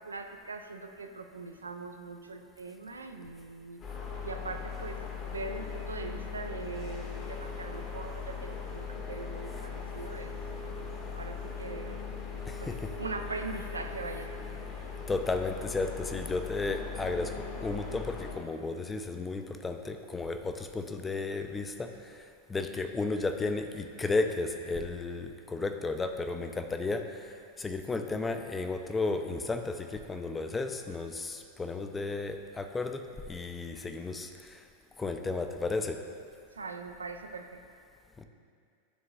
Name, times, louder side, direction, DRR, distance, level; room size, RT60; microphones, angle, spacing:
voice 1, 0.0-3.8 4.2-10.3 11.1-12.1 12.6-14.3 36.5-37.6, right 3 dB, 75° right, 6 dB, 0.4 m, -41 dB
sound 1, 3.8-18.4, left 5 dB, 30° left, 0.9 m, -39 dB
voice 2, 12.5-12.9 15.1-22.2 22.5-34.6 35.0-36.0 38.2-38.3, left 3 dB, 15° left, 6 dB, 0.4 m, -33 dB
11.0 x 3.8 x 2.3 m, 2.2 s
figure-of-eight pair, 90°, 0 cm